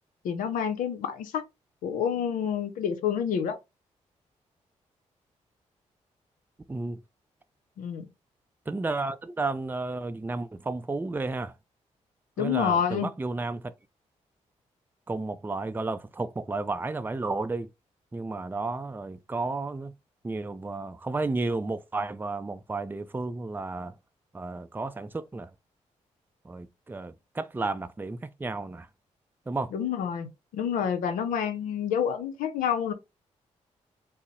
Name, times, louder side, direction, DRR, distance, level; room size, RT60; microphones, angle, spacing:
voice 1, 0.2-1.4 1.8-3.6 7.8-8.1 12.4-13.1 29.7-32.9, left 8 dB, 85° left, 0.6 m, -28 dB
voice 2, 6.7-7.0 8.7-11.5 12.4-13.7 15.1-17.7 18.1-19.9 20.2-23.9 24.3-25.5 26.4-28.9 29.5-29.7, right 3 dB, 15° right, 0.4 m, -32 dB
3.9 x 2.0 x 3.7 m
supercardioid pair, 50°, 14 cm